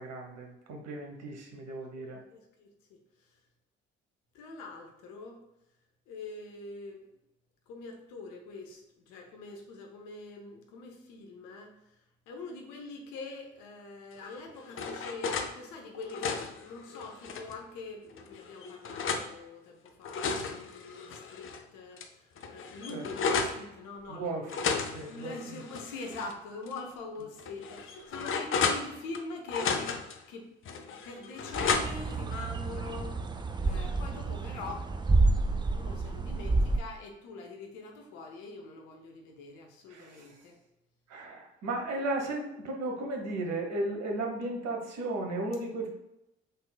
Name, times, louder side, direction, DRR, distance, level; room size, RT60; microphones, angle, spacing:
voice 1, 0.0-2.2 22.9-23.0 24.1-24.4 24.9-25.6 39.9-40.4 41.1-45.9, right 2 dB, 55° right, 1 dB, 1.1 m, -35 dB
voice 2, 2.0-3.4 4.3-5.4 6.1-7.0 7.7-24.5 25.0-29.9 30.3-30.5 30.8-33.2 33.6-34.9 35.3-40.6, left 3 dB, 65° left, 2 dB, 0.9 m, -44 dB
sound 1, 14.2-15.5 15.9-17.6 18.2-19.3 19.9-21.6 22.0-22.1 22.4-23.6 24.5-26.3 26.7-26.8 27.4-29.2 29.5-30.2 30.7-32.2, left 5 dB, 40° left, 0.6 m, -33 dB
sound 2, 31.5-36.8, right 3 dB, 15° right, 0.4 m, -29 dB
5.3 x 3.7 x 2.2 m, 0.90 s
figure-of-eight pair, 45°, 32 cm